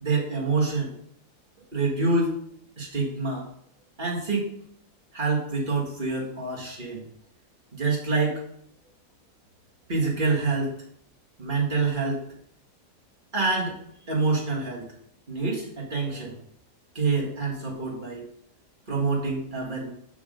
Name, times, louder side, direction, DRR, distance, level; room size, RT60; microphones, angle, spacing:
voice 1, 0.0-0.9 1.7-2.4 2.8-3.4 4.0-4.5 5.1-7.0 7.7-8.4 9.9-10.8 11.4-12.2 13.3-13.8 14.1-14.9 15.3-16.4 17.0-18.2 18.9-19.9, right 3 dB, 30° right, -4 dB, 1.9 m, -26 dB
6.1 x 5.9 x 5.1 m, 0.70 s
omnidirectional pair, 1.8 m